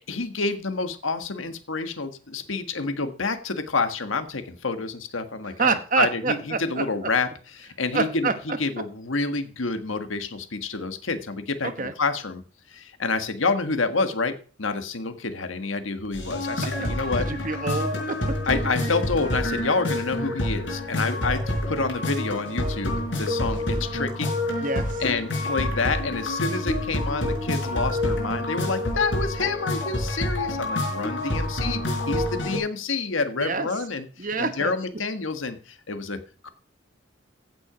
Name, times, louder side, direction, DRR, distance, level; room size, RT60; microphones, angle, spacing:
voice 1, 0.1-7.3 7.6-12.4 12.7-17.3 18.5-24.4 25.0-31.8 32.1-36.5, left 4 dB, 90° left, 9 dB, 1.5 m, -28 dB
voice 2, 5.6-7.1 7.9-8.6 11.6-11.9 16.6-16.9 17.2-18.4 24.6-25.0 33.4-33.7 34.2-34.7, right 4 dB, 40° right, 10 dB, 1.1 m, -27 dB
sound 1, 16.1-32.6, left 1 dB, 65° left, 5.0 m, -27 dB
16.0 x 6.2 x 5.0 m, 0.41 s
head